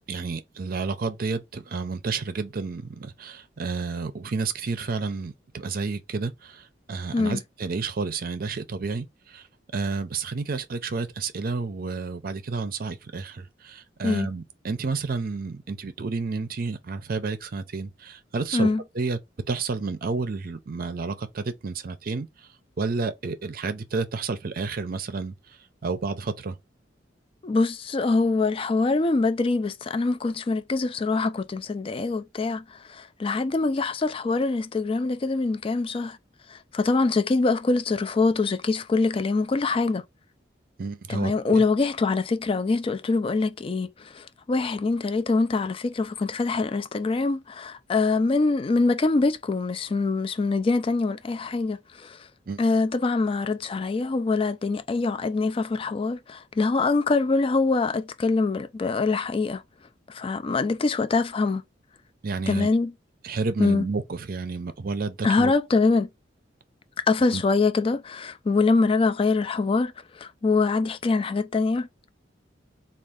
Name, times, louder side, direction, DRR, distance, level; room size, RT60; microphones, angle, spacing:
voice 1, 0.1-9.4 9.7-18.7 19.0-19.2 19.5-22.3 22.8-25.3 25.8-26.6 40.8-41.6 52.5-52.6 62.2-62.7 63.2-65.5 67.3-67.4, right 4 dB, 50° right, 0.5 m, -30 dB
voice 2, 27.4-36.2 36.5-40.0 41.1-52.2 52.6-59.6 60.1-61.6 62.5-62.9 63.6-63.9 65.2-66.1 67.0-71.9, left 3 dB, 30° left, 0.4 m, -24 dB
3.5 x 2.4 x 3.5 m
head